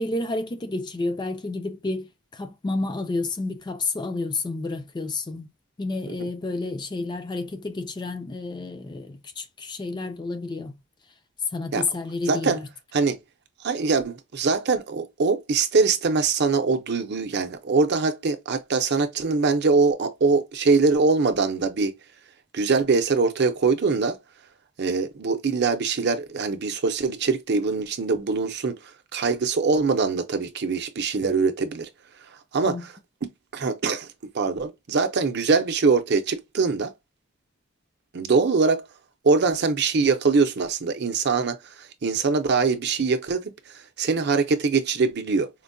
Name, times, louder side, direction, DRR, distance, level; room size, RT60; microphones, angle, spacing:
voice 1, 0.0-5.5 5.8-10.8 11.5-12.6 32.6-32.8, left 3 dB, 20° left, 0.4 m, -30 dB
voice 2, 12.3-12.6 12.9-13.2 13.6-21.9 22.5-24.2 24.8-31.9 32.5-32.9 33.2-34.1 34.3-36.9 38.1-38.8 39.2-45.5, right 4 dB, 55° right, 0.6 m, -23 dB
4.4 x 2.1 x 2.6 m
head